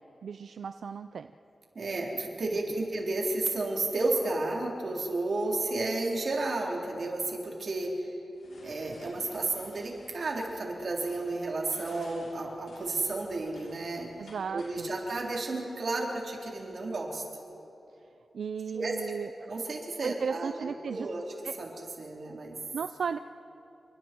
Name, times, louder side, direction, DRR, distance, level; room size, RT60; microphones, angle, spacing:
voice 1, 0.2-1.3 14.2-14.9 18.3-19.3 20.0-21.1 21.4-21.6 22.7-23.2, right 6 dB, 85° right, 10 dB, 0.5 m, -35 dB
voice 2, 1.8-8.1 8.6-17.2 18.7-19.0 19.4-21.2 21.6-22.6, right 2 dB, 60° right, -1 dB, 3.8 m, -32 dB
sound 1, 8.3-15.3, left 1 dB, 80° left, 7.1 m, -54 dB
28.5 x 24.5 x 4.6 m, 2.9 s
wide cardioid pair, 120°, 0 cm